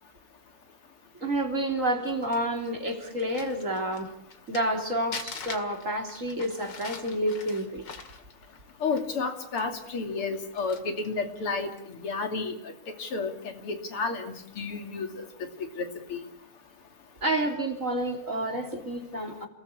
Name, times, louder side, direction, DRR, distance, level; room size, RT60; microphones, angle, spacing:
voice 1, 1.1-4.1 4.5-7.8 17.2-19.5, right 1 dB, 35° right, 3 dB, 3.6 m, -29 dB
Crumpling crinkling, 1.8-4.8 5.1-9.2 9.6-9.7 10.3-11.1 11.7-11.9, left 5 dB, 55° left, 2.8 m, -43 dB
voice 2, 8.8-12.5 13.0-15.3 15.8-16.2, left 4 dB, 85° left, 5 dB, 3.4 m, -31 dB
29.5 x 19.0 x 8.5 m, 0.76 s
omnidirectional pair, 2.4 m